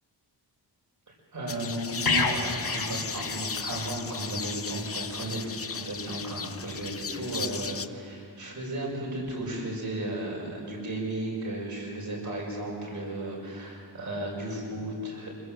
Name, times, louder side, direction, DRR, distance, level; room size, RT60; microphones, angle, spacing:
voice 1, 1.1-15.3, right 1 dB, 45° right, -2 dB, 6.2 m, -34 dB
sound 1, 1.5-7.9, left 5 dB, 35° left, 0.7 m, -36 dB
sound 2, 2.0-3.9 4.3-4.5, left 4 dB, 55° left, 2.1 m, -29 dB
25.5 x 21.5 x 8.0 m, 2.4 s
wide cardioid pair, 180°, 42 cm